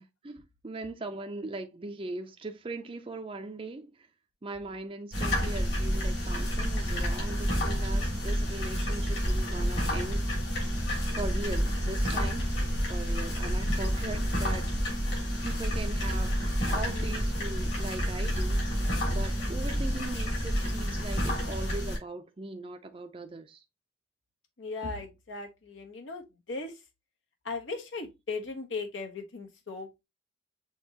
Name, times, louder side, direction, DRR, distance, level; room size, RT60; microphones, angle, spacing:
voice 1, 0.0-4.1 4.4-10.4 11.1-12.5 12.9-14.7 15.4-23.6, right 2 dB, 30° right, 0.4 m, -40 dB
sound 1, 5.1-22.0, equal, 65° left, 2.9 m, -29 dB
voice 2, 16.9-17.2 24.6-26.8 27.4-30.0, left 3 dB, 85° left, 1.1 m, -38 dB
6.4 x 2.9 x 2.8 m
head